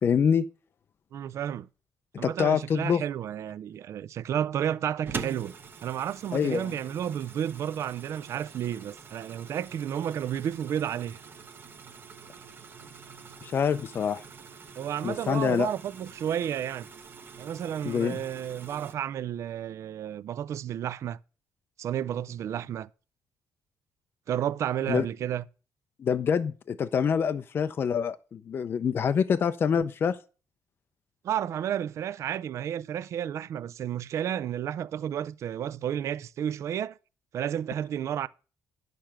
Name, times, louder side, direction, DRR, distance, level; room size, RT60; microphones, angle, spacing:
voice 1, 0.0-0.5 2.1-3.0 6.3-6.7 13.4-14.2 15.0-15.7 17.8-18.2 24.9-25.0 26.0-30.2, left 7 dB, 40° left, 0.5 m, -26 dB
voice 2, 1.1-1.7 2.2-5.5 5.8-11.2 14.8-16.9 17.4-21.2 21.8-22.9 24.3-25.4 31.2-37.0 37.3-38.3, right 10 dB, 55° right, 0.4 m, -32 dB
sound 1, 5.1-18.9, right 5 dB, 35° right, 0.9 m, -44 dB
10.5 x 6.7 x 5.9 m
cardioid pair, 145°, 6 cm